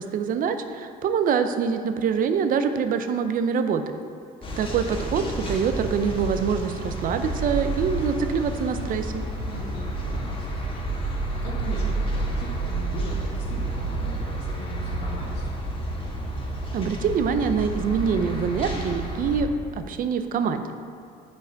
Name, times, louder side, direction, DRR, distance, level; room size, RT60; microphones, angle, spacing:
voice 1, 0.0-3.8 4.6-9.2 16.7-19.5 19.7-20.7, right 6 dB, 55° right, 8 dB, 0.6 m, -25 dB
sound 1, 4.4-19.4, right 2 dB, 30° left, 1.3 m, -30 dB
voice 2, 4.5-5.3 9.4-15.6, left 1 dB, 90° left, -4 dB, 2.1 m, -40 dB
9.4 x 5.0 x 4.6 m, 2.4 s
cardioid pair, 110°, 17 cm